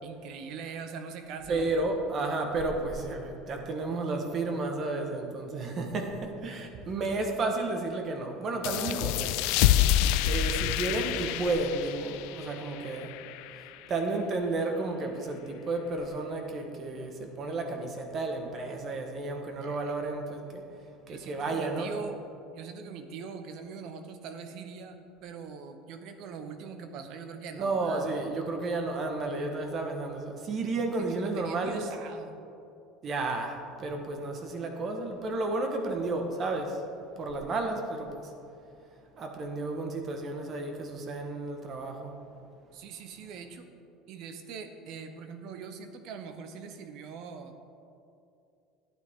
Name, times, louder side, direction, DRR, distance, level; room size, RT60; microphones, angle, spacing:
voice 1, 0.0-1.8 19.6-19.9 21.1-22.2 22.5-28.1 31.0-32.4 42.7-43.7 44.1-47.5, right 5 dB, 60° right, 7 dB, 0.9 m, -42 dB
voice 2, 1.5-9.4 10.0-13.2 13.9-20.6 21.1-21.9 27.6-31.9 33.0-36.8 37.2-38.3 39.2-42.2, right 2 dB, 40° right, 4 dB, 1.3 m, -32 dB
sound 1, 8.6-13.9, left 12 dB, 75° left, 0.3 m, -28 dB
11.5 x 9.0 x 3.7 m, 2.6 s
supercardioid pair, 120°, 0 cm